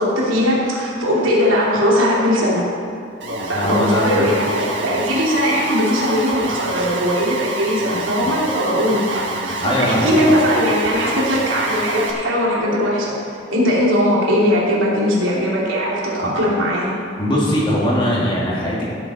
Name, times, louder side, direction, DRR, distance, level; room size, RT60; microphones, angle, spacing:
voice 1, 0.0-2.6 3.4-16.9, equal, 90° right, -5 dB, 3.2 m, -19 dB
Alarm, 3.2-12.1, right 2 dB, 65° right, 1.5 m, -27 dB
voice 2, 3.5-4.3 8.2-8.3 9.6-10.3 16.2-16.3 17.2-18.8, equal, 25° left, -5 dB, 2.6 m, -20 dB
16.5 x 8.2 x 4.4 m, 2.3 s
head